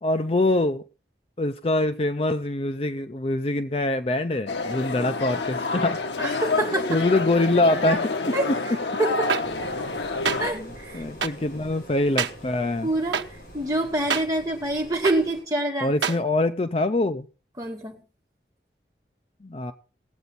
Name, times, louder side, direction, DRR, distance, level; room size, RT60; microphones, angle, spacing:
voice 1, 0.0-0.8 1.4-6.0 6.9-8.4 10.5-10.7 10.9-12.9 15.8-17.3 19.4-19.7, left 2 dB, 35° left, 10 dB, 0.5 m, -24 dB
sound 1, 4.5-10.5, left 3 dB, 80° left, 1.1 m, -28 dB
voice 2, 6.2-7.0 8.3-8.5 9.0-9.3 10.4-11.0 12.8-13.2 13.5-15.9 17.6-18.0, right 1 dB, 20° right, 0 dB, 2.1 m, -26 dB
sound 2, 9.3-9.4 10.3-10.4 11.2-11.3 12.2-12.3 13.1-13.2 14.1-14.2 15.0-15.2 16.0-16.2, right 7 dB, 90° right, 1.0 m, -24 dB
sound 3, 9.4-15.4, equal, 65° left, 6.5 m, -44 dB
19.0 x 8.1 x 4.1 m, 0.34 s
head